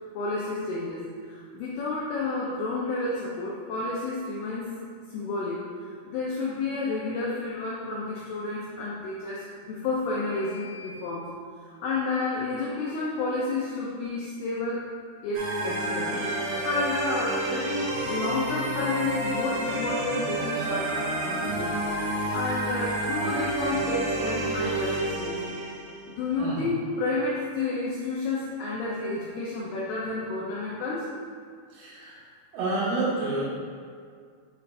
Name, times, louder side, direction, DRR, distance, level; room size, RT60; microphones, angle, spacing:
voice 1, 0.1-4.8 5.1-11.3 11.6-14.9 15.2-21.8 22.3-25.4 26.2-31.1, left 3 dB, 85° left, -5 dB, 2.3 m, -31 dB
sound 1, 15.3-26.1, right 1 dB, 75° right, 2.0 m, -29 dB
voice 2, 31.7-32.2 32.5-33.4, right 2 dB, 90° right, -9 dB, 4.4 m, -29 dB
8.5 x 3.2 x 4.1 m, 2.1 s
omnidirectional pair, 5.5 m